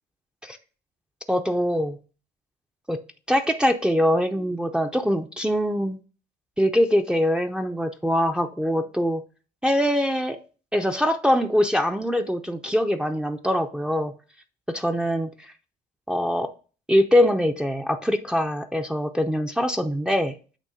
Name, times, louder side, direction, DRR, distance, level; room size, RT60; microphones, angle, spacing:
voice 1, 1.3-2.0 2.9-3.0 3.3-6.0 6.6-9.2 9.6-10.4 10.7-14.1 14.7-15.3 16.1-16.5 16.9-20.3, equal, 5° right, 5 dB, 0.5 m, -23 dB
8.3 x 3.1 x 5.0 m, 0.36 s
cardioid pair, 110°, 17 cm